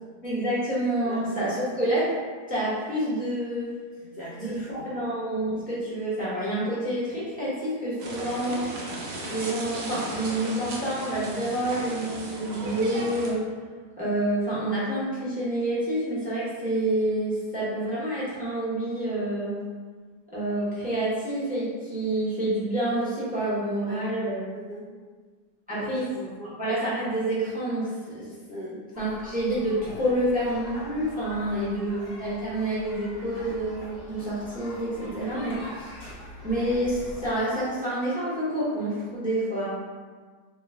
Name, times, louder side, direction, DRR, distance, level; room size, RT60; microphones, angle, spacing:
voice 1, 0.2-2.1 2.5-3.7 4.4-8.6 9.3-13.4 14.0-19.6 20.3-24.4 25.7-26.0 26.6-28.3 29.0-35.9 36.4-39.7, right 1 dB, 5° right, -8 dB, 0.8 m, -28 dB
voice 2, 4.0-4.9 23.8-24.1 24.5-25.0 25.7-26.6 28.5-28.8, right 1 dB, 70° left, -6 dB, 0.6 m, -41 dB
sound 1, 8.0-13.3, right 2 dB, 75° right, 1.2 m, -35 dB
sound 2, 28.9-37.3, left 1 dB, 25° left, 1.2 m, -43 dB
3.1 x 2.9 x 3.5 m, 1.5 s
omnidirectional pair, 1.8 m